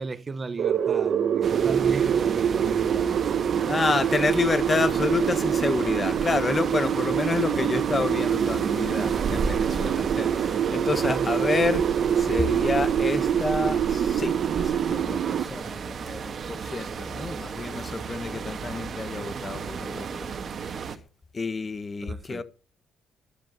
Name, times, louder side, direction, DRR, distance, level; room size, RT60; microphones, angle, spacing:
voice 1, 0.0-3.7 11.0-11.3 22.0-22.4, right 4 dB, 35° right, 1.3 m, -35 dB
sound 1, 0.6-15.4, right 9 dB, 65° right, 1.2 m, -25 dB
sound 2, 1.4-21.0, right 5 dB, 50° right, 2.0 m, -33 dB
voice 2, 3.7-11.8 12.2-20.3 21.3-22.4, left 4 dB, 30° left, 1.4 m, -29 dB
11.5 x 9.8 x 9.7 m
cardioid pair, 90°, 0 cm